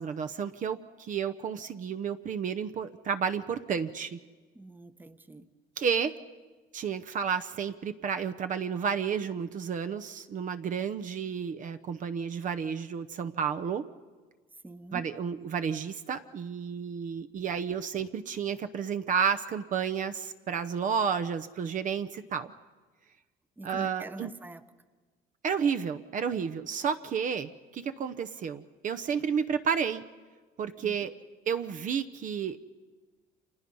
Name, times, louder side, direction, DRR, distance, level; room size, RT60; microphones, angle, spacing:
voice 1, 0.0-4.2 5.8-6.1 6.7-13.9 14.9-22.5 23.6-24.3 25.4-30.0 30.6-31.1 31.5-32.6, right 7 dB, 50° right, 10 dB, 0.8 m, -31 dB
voice 2, 4.5-5.5 14.6-15.0 23.6-24.6 30.8-31.0, right 2 dB, 10° right, 11 dB, 1.0 m, -44 dB
30.0 x 25.5 x 5.5 m, 1.3 s
cardioid pair, 110°, 17 cm